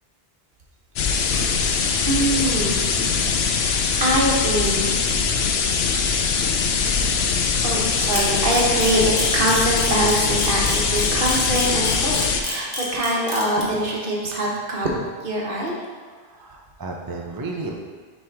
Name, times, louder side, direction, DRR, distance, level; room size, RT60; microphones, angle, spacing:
sound 1, 1.0-12.4, left 5 dB, 80° left, 0.8 m, -22 dB
voice 1, 2.1-5.2 7.6-14.9 15.2-15.8, right 1 dB, 60° right, -3 dB, 1.2 m, -24 dB
Camera, 8.1-13.6, left 2 dB, 45° left, 1.2 m, -29 dB
voice 2, 16.2-17.8, right 3 dB, 30° right, 0 dB, 0.4 m, -33 dB
6.1 x 3.4 x 4.5 m, 1.5 s
omnidirectional pair, 1.0 m